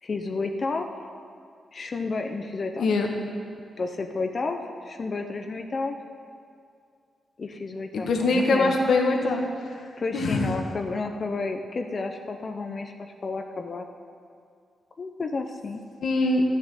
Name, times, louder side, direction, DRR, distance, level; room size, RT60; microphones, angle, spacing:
voice 1, 0.0-0.9 1.7-2.9 3.8-6.0 7.4-8.7 10.0-13.9 15.0-15.8, left 3 dB, 45° left, 5 dB, 0.9 m, -31 dB
voice 2, 7.9-9.4 10.1-10.5 16.0-16.4, left 3 dB, 75° left, 2 dB, 1.4 m, -23 dB
12.0 x 7.4 x 9.1 m, 2.3 s
cardioid pair, 80°, 0 cm